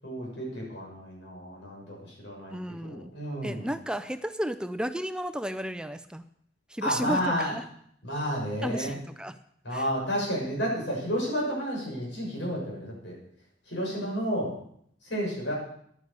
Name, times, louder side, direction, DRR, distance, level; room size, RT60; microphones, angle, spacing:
voice 1, 0.0-3.7 6.8-7.5 8.0-8.9 9.6-13.1 13.7-14.5 15.0-15.5, equal, 75° left, -3 dB, 6.4 m, -31 dB
voice 2, 2.5-3.1 3.4-6.2 6.7-7.2 7.5-7.7 8.6-9.4 9.7-9.9 14.0-14.2, equal, 5° right, 10 dB, 0.4 m, -33 dB
11.0 x 9.7 x 6.7 m, 0.68 s
head